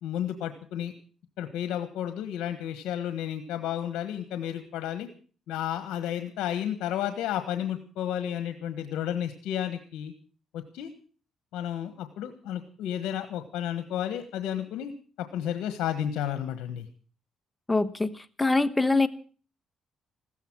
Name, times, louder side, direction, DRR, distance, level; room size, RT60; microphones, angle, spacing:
voice 1, 0.0-0.9 1.4-5.1 5.5-10.1 10.5-10.9 11.5-14.9 15.2-16.9, left 10 dB, 85° left, 9 dB, 1.4 m, -32 dB
voice 2, 17.7-19.1, left 3 dB, 15° left, 12 dB, 1.2 m, -24 dB
15.5 x 14.0 x 6.2 m, 0.40 s
cardioid pair, 90°, 0 cm